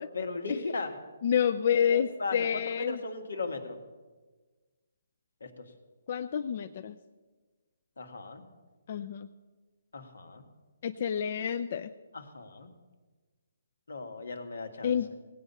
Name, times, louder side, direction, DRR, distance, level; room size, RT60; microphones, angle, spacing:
voice 1, 0.1-0.9 1.7-3.8 5.4-5.6 8.0-8.4 9.9-10.4 12.1-12.7 13.9-15.0, left 3 dB, 85° left, 6 dB, 1.8 m, -37 dB
voice 2, 1.2-3.0 6.1-7.0 8.9-9.3 10.8-11.9 14.8-15.1, left 8 dB, 40° left, 9 dB, 0.4 m, -28 dB
18.0 x 8.8 x 5.5 m, 1.3 s
hypercardioid pair, 165°, 0 cm